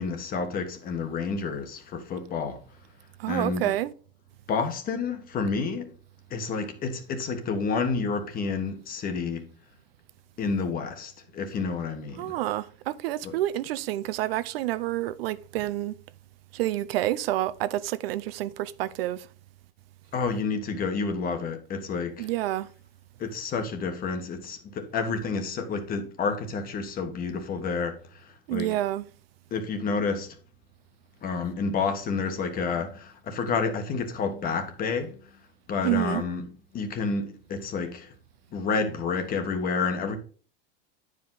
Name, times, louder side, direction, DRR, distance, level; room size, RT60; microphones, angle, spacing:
voice 1, 0.0-2.6 3.3-3.7 4.5-5.9 6.3-9.5 10.4-12.3 13.2-13.3 20.1-22.3 23.2-28.8 29.5-30.3 31.2-35.2 35.7-36.5 36.7-38.1 38.5-40.2, left 4 dB, 30° left, 1.3 m, -29 dB
voice 2, 3.2-3.9 12.2-15.9 16.5-19.3 22.2-22.7 28.5-29.1 35.8-36.2, right 14 dB, 80° right, 0.6 m, -28 dB
9.3 x 5.1 x 3.9 m
supercardioid pair, 140°, 29 cm